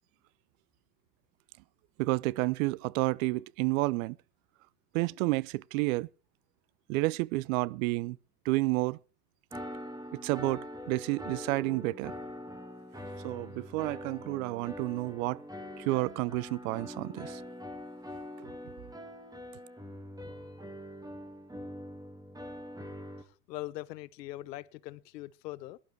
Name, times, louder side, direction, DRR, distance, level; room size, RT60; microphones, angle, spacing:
voice 1, 2.0-4.2 4.9-6.1 6.9-8.2 8.4-9.0 10.1-12.1 13.2-15.4 15.8-17.4 18.4-18.5, right 21 dB, 55° right, 0.6 m, -30 dB
sound 1, 9.5-23.2, equal, 5° right, 2.5 m, -43 dB
voice 2, 23.2-25.8, left 17 dB, 75° left, 1.0 m, -42 dB
17.5 x 11.5 x 4.7 m
hypercardioid pair, 105°, 50 cm